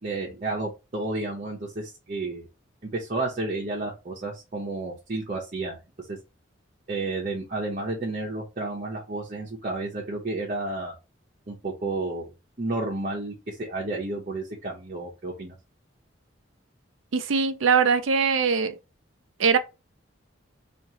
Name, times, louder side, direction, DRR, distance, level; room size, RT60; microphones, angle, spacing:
voice 1, 0.0-2.4 2.8-5.8 6.1-6.2 6.9-10.9 11.5-12.3 12.6-15.5, right 2 dB, 40° right, 0.8 m, -31 dB
voice 2, 17.1-18.8 19.4-19.6, right 6 dB, 85° right, 0.5 m, -21 dB
2.9 x 2.5 x 3.6 m
head